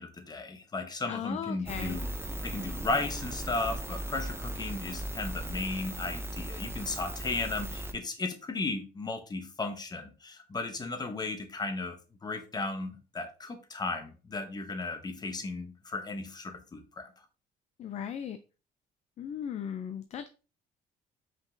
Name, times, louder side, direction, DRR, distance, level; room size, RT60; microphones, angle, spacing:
voice 1, 0.0-2.1 2.4-17.1, left 3 dB, 25° left, 0.9 m, -35 dB
voice 2, 1.1-2.0 17.8-18.4 19.2-20.3, left 8 dB, 40° left, 0.4 m, -37 dB
sound 1, 1.7-7.9, right 1 dB, 15° right, 0.5 m, -37 dB
5.2 x 3.7 x 2.6 m
cardioid pair, 110°, 17 cm